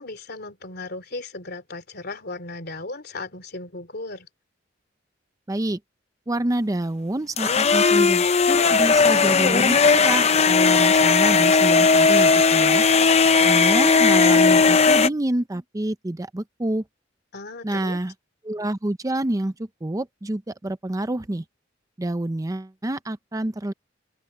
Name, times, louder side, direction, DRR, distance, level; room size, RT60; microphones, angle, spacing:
voice 1, 0.0-4.3 17.3-18.0, left 2 dB, 55° left, 3.3 m, -36 dB
voice 2, 5.5-5.8 6.3-12.9 13.4-16.8 17.6-18.1 18.4-21.4 22.0-23.7, right 1 dB, 20° right, 0.6 m, -27 dB
sound 1, 7.4-15.1, left 4 dB, 35° left, 0.6 m, -17 dB
open air
head